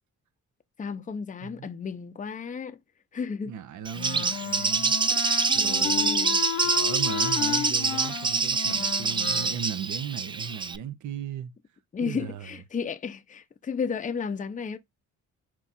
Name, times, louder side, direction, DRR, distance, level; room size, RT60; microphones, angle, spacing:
voice 1, 0.8-2.8 3.1-3.5 5.1-5.2 5.6-6.4 11.9-14.8, left 6 dB, 25° left, 0.6 m, -33 dB
voice 2, 1.4-1.7 3.5-5.0 5.5-6.1 6.6-11.5 12.0-12.5, right 8 dB, 75° right, 0.7 m, -37 dB
Bird, 3.8-10.8, right 4 dB, 15° right, 0.3 m, -26 dB
Wind instrument woodwind instrument, 3.9-9.6, left 11 dB, 90° left, 0.7 m, -33 dB
4.6 x 2.4 x 4.0 m
cardioid pair, 90°, 30 cm